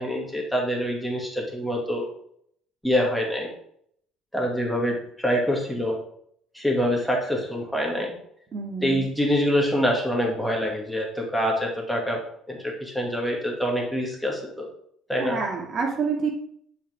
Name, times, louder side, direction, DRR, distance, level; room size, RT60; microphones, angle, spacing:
voice 1, 0.0-2.1 2.8-3.5 4.3-6.0 6.5-8.1 8.8-12.2 12.5-14.7 15.1-15.4, equal, ahead, -1 dB, 2.5 m, -25 dB
voice 2, 8.5-9.1 15.2-16.3, right 5 dB, 45° right, 0 dB, 2.6 m, -28 dB
11.0 x 5.8 x 3.7 m, 0.66 s
cardioid pair, 105°, 0 cm